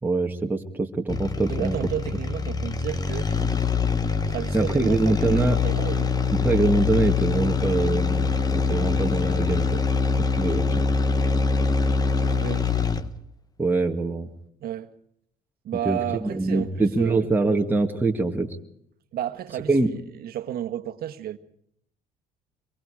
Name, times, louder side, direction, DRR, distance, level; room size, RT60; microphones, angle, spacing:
voice 1, 0.0-1.8 4.5-5.6 6.3-9.8 10.4-10.6 13.6-14.3 15.9-18.5 19.7-19.9, right 3 dB, 10° right, 2.1 m, -24 dB
sound 1, 1.1-13.2, left 5 dB, 25° left, 1.3 m, -24 dB
voice 2, 1.5-3.3 4.3-6.2 12.2-12.9 14.6-14.9 15.6-17.3 19.1-21.4, right 11 dB, 65° right, 1.6 m, -32 dB
25.0 x 22.5 x 5.0 m
cardioid pair, 110°, 17 cm